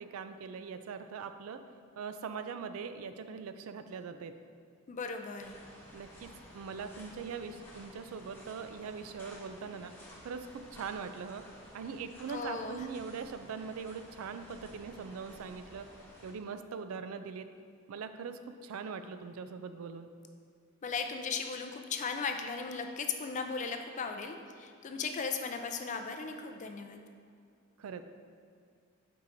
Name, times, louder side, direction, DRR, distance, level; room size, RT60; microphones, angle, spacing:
voice 1, 0.0-1.6 2.0-4.3 5.9-6.3 6.5-9.9 10.2-11.4 11.7-15.9 16.2-17.5 17.9-20.1 27.8-28.0, right 5 dB, 85° right, 9 dB, 0.4 m, -41 dB
voice 2, 4.9-5.6 12.3-12.9 20.8-27.0, left 5 dB, 35° left, 5 dB, 0.4 m, -37 dB
sound 1, 5.4-16.3, equal, 10° left, 1.2 m, -53 dB
8.2 x 4.7 x 2.6 m, 2.3 s
head